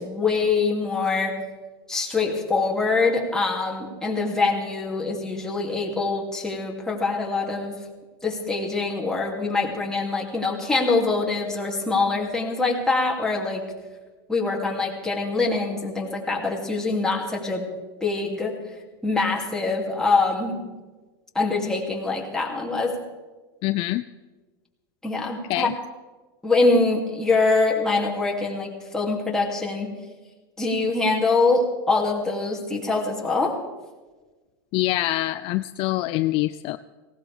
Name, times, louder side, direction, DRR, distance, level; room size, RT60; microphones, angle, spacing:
voice 1, 0.0-1.3 1.9-7.8 8.2-13.6 14.3-17.6 18.0-18.6 19.0-20.6 21.3-23.0 25.0-25.7 26.4-29.9 30.6-33.6, left 3 dB, 5° left, -2 dB, 2.7 m, -24 dB
voice 2, 23.6-24.0 25.5-25.7 34.7-36.8, left 17 dB, 45° left, 11 dB, 0.4 m, -25 dB
19.0 x 16.5 x 3.5 m, 1.3 s
hypercardioid pair, 115°, 12 cm